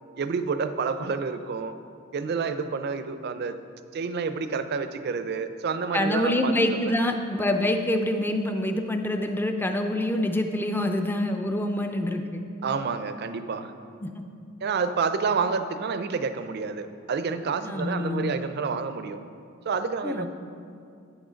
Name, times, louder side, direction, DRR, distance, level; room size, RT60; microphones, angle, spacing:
voice 1, 0.2-1.7 2.1-3.6 3.9-7.0 12.6-13.7 14.6-19.2 19.6-20.3, right 5 dB, 55° right, 10 dB, 0.4 m, -29 dB
voice 2, 5.9-12.5 14.0-14.1 15.5-15.6 17.6-18.4 20.0-20.3, left 1 dB, 10° left, 5 dB, 0.4 m, -26 dB
8.7 x 6.2 x 5.1 m, 2.4 s
head